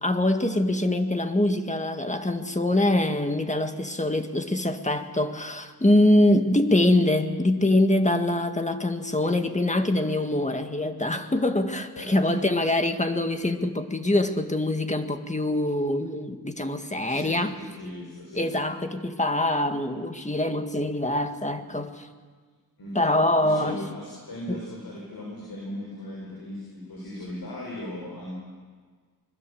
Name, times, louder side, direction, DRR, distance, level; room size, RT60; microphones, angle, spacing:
voice 1, 0.0-17.5 18.4-22.1 23.0-23.8 24.5-24.6, left 1 dB, 20° left, 7 dB, 1.8 m, -24 dB
voice 2, 11.9-12.4 17.1-18.5 22.8-28.4, left 1 dB, 65° left, -3 dB, 7.7 m, -38 dB
25.0 x 22.0 x 7.7 m, 1.5 s
wide cardioid pair, 100°, 39 cm